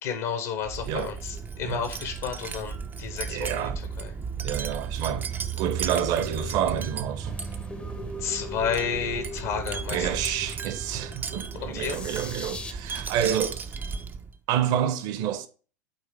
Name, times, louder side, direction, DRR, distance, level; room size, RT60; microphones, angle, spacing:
voice 1, 0.0-3.7 4.0-4.1 8.2-10.4 11.6-12.0, left 7 dB, 55° left, 1.2 m, -31 dB
Wind chime, 0.6-14.4, right 6 dB, 20° right, 0.6 m, -35 dB
voice 2, 3.3-3.8 4.4-7.4 9.9-13.7 14.5-15.5, right 10 dB, 50° right, 1.0 m, -29 dB
sound 1, 7.2-12.7, left 3 dB, 15° left, 0.8 m, -41 dB
8.8 x 3.4 x 4.9 m
figure-of-eight pair, 80°, 9 cm